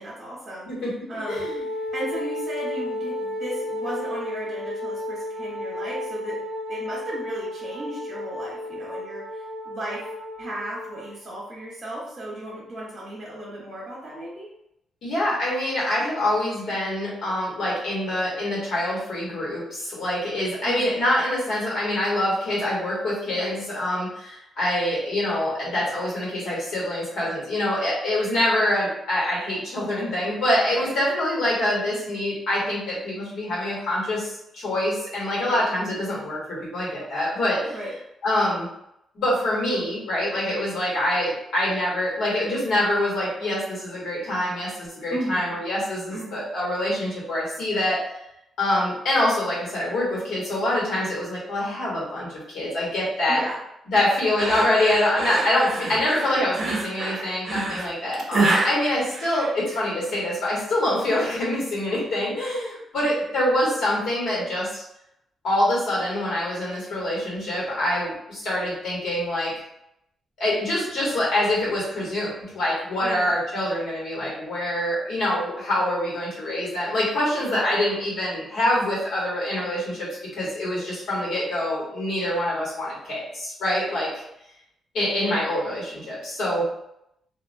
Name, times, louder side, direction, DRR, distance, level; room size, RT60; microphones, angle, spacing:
voice 1, 0.0-0.7 1.1-1.6 1.9-6.4 6.7-10.1 10.4-14.5 20.6-20.9 23.4-23.6 28.3-28.5 30.7-30.9 35.4-35.6 37.7-37.9 45.1-45.6 46.1-46.4 53.3-53.6 53.9-54.1 73.0-73.3, right 1 dB, 35° right, -7 dB, 1.0 m, -35 dB
voice 2, 0.7-1.6 15.0-37.8 38.2-38.7 39.1-48.0 48.6-52.3 52.5-53.4 53.9-64.8 65.4-69.5 70.4-84.2 84.9-86.7, left 1 dB, 75° left, -6 dB, 1.3 m, -25 dB
Wind instrument woodwind instrument, 1.1-11.1, left 1 dB, 5° right, 0.8 m, -33 dB
sound 1, 54.4-59.9, right 3 dB, 55° right, 0.5 m, -27 dB
2.5 x 2.1 x 2.6 m, 0.80 s
cardioid pair, 125°, 0 cm